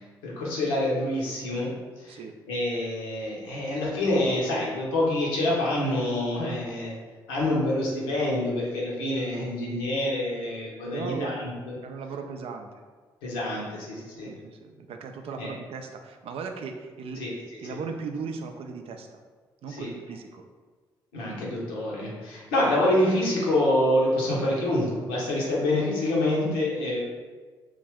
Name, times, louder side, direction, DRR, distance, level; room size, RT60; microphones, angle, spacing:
voice 1, 0.2-1.7 2.0-2.2 2.5-6.9 7.3-11.7 13.2-14.3 15.4-15.5 17.2-17.3 19.7-19.9 21.1-27.0, left 1 dB, 75° left, -4 dB, 0.9 m, -26 dB
voice 2, 10.9-11.4 11.8-12.7 14.2-17.2 17.6-19.2 19.6-20.4, right 5 dB, 55° right, 5 dB, 0.4 m, -37 dB
3.2 x 2.5 x 3.5 m, 1.4 s
figure-of-eight pair, 40°, 12 cm